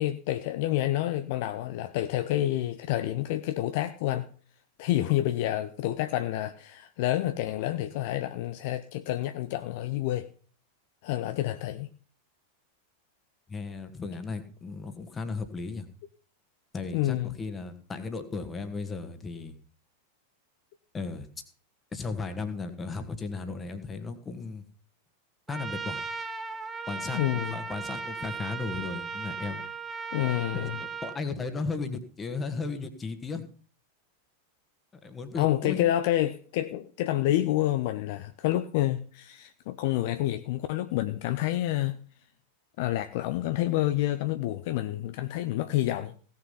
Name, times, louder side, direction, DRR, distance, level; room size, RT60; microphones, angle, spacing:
voice 1, 0.0-4.3 4.8-10.3 11.0-11.9 16.9-17.3 27.1-27.6 30.1-30.8 35.4-42.0 42.8-46.3, left 14 dB, 50° left, 0.6 m, -28 dB
voice 2, 13.5-15.9 16.7-19.6 20.9-21.3 21.9-24.6 25.5-26.0 26.9-29.6 30.5-33.5 35.0-35.9, left 4 dB, 20° left, 1.7 m, -35 dB
Trumpet, 25.5-31.2, right 5 dB, 15° right, 1.1 m, -37 dB
17.0 x 6.7 x 5.6 m
figure-of-eight pair, 90°, 0 cm